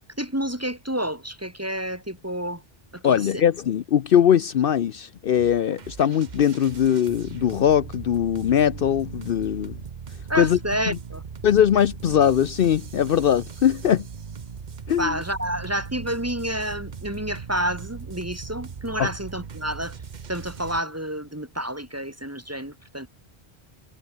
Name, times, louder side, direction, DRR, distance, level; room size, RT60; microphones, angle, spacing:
voice 1, 0.2-2.6 2.9-3.4 10.3-11.2 15.0-19.9 20.3-23.1, right 1 dB, 15° right, 2.4 m, -29 dB
voice 2, 3.0-9.7 10.3-10.6 10.9-11.0 11.4-14.0 14.9-15.2 19.0-19.1, left 9 dB, 65° left, 0.8 m, -21 dB
sound 1, 5.4-20.8, right 6 dB, 50° right, 1.0 m, -39 dB
omnidirectional pair, 1.0 m